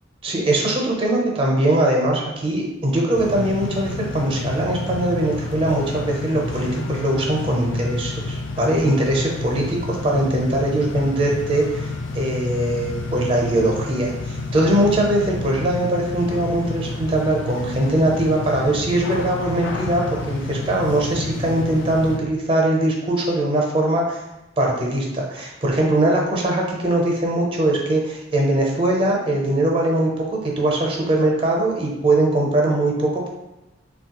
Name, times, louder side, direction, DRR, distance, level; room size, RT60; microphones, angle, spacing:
voice 1, 0.2-9.6 10.0-24.2 24.6-33.3, right 1 dB, 30° right, -1 dB, 0.5 m, -21 dB
sound 1, 3.1-22.2, left 3 dB, 65° left, 0.3 m, -30 dB
3.0 x 2.2 x 2.9 m, 0.99 s
head